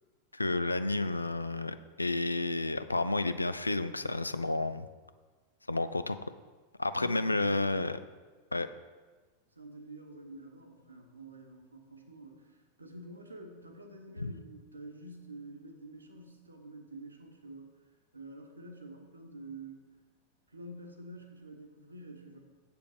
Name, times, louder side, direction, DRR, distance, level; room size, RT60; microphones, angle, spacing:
voice 1, 0.3-4.9 5.7-6.2 6.8-7.9 8.5-8.7 14.2-14.3, left 2 dB, 80° left, 12 dB, 0.4 m, -31 dB
voice 2, 6.9-7.8 9.5-17.7 18.1-19.9 20.5-22.4, right 2 dB, 80° right, 3 dB, 1.2 m, -47 dB
7.6 x 6.8 x 5.0 m, 1.4 s
figure-of-eight pair, 90°, 0 cm